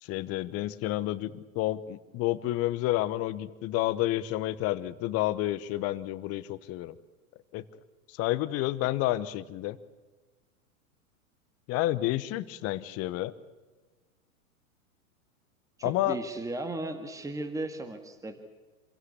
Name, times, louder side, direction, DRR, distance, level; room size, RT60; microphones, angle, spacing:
voice 1, 0.0-6.9 7.5-7.6 8.1-9.8 11.7-13.3 15.8-16.2, left 16 dB, 35° left, 15 dB, 1.1 m, -30 dB
voice 2, 15.8-18.4, right 2 dB, 10° right, 8 dB, 1.9 m, -36 dB
26.5 x 16.0 x 8.4 m, 1.3 s
hypercardioid pair, 105°, 43 cm